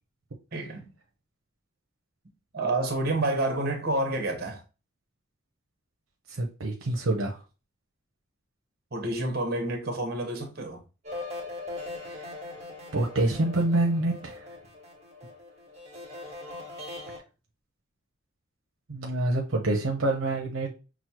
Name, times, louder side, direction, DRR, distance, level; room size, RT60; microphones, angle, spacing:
voice 1, 0.5-0.9 2.5-4.6 8.9-10.8, right 2 dB, 50° right, 1.0 m, -29 dB
voice 2, 6.3-7.4 12.0-12.3 12.9-14.5 18.9-20.8, right 2 dB, 75° right, 0.7 m, -27 dB
sound 1, 11.0-17.2, left 2 dB, 30° right, 1.3 m, -40 dB
6.0 x 2.1 x 2.9 m
head